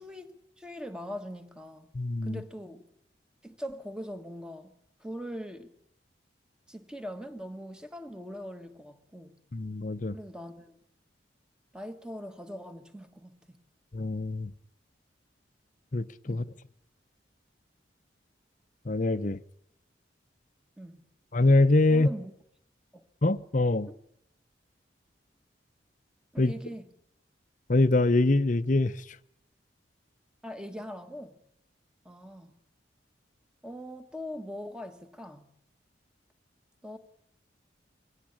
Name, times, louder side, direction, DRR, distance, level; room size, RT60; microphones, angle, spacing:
voice 1, 0.0-1.9 2.2-2.9 3.4-5.7 6.7-9.4 10.1-10.8 11.7-13.6 16.3-16.5 20.8-21.1 21.9-22.3 22.9-23.0 23.9-24.0 26.3-26.8 30.4-31.4 32.0-32.5 33.6-35.6 36.8-37.0, equal, 5° right, 1.6 m, -41 dB
voice 2, 1.9-2.4 9.5-10.1 13.9-14.5 15.9-16.5 18.9-19.4 21.3-22.1 23.2-23.9 26.4-26.5 27.7-28.9, left 2 dB, 45° left, 0.8 m, -24 dB
23.5 x 17.0 x 8.7 m
head